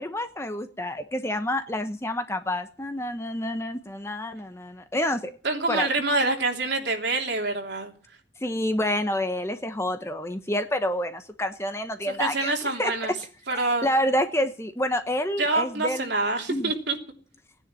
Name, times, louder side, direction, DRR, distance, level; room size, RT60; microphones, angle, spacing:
voice 1, 0.0-5.3 5.7-5.9 8.4-12.5 12.8-12.9 13.5-16.1 16.5-16.7, left 1 dB, 15° left, 8 dB, 1.0 m, -28 dB
voice 2, 5.4-7.9 12.1-13.1 13.5-13.9 15.4-17.0, right 3 dB, 60° right, 2 dB, 3.3 m, -26 dB
18.0 x 10.0 x 7.5 m, 0.43 s
head